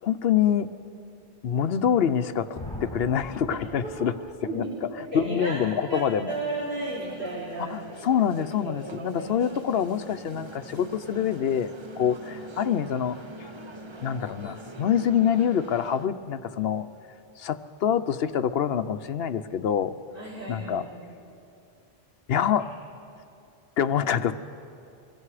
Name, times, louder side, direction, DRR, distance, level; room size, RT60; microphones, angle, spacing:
voice 1, 0.0-0.7 1.4-4.1 4.5-6.3 7.6-13.2 14.0-16.9 17.4-19.9 20.5-20.8 22.3-22.7 23.8-24.3, left 8 dB, 70° left, 11 dB, 0.9 m, -26 dB
sound 1, 2.5-4.5, left 1 dB, 25° left, 5.8 m, -40 dB
voice 2, 4.4-5.6 5.9-7.7 8.6-9.5 20.1-20.9, right 2 dB, 55° right, -8 dB, 4.2 m, -34 dB
sound 2, 6.3-16.1, right 1 dB, 30° right, 0.9 m, -44 dB
27.5 x 22.5 x 4.9 m, 2.6 s
omnidirectional pair, 1.1 m